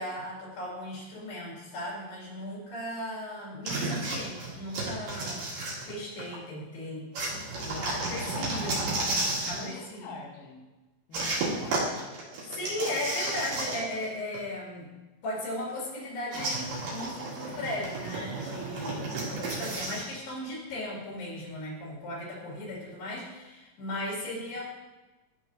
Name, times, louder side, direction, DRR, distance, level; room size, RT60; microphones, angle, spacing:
voice 1, 0.0-5.5 5.9-7.1 7.6-8.9 9.5-10.2 12.5-14.9 15.2-24.6, left 1 dB, 90° left, -4 dB, 4.4 m, -37 dB
sound 1, 3.7-6.4 7.1-9.7 11.1-14.1 14.3-14.4 16.3-20.1, right 2 dB, 75° right, 4.1 m, -32 dB
voice 2, 7.7-9.1 9.5-10.6 11.1-12.2 12.5-13.0 17.5-17.8, left 3 dB, 70° left, 0 dB, 2.5 m, -45 dB
12.5 x 6.2 x 2.6 m, 1.1 s
omnidirectional pair, 4.6 m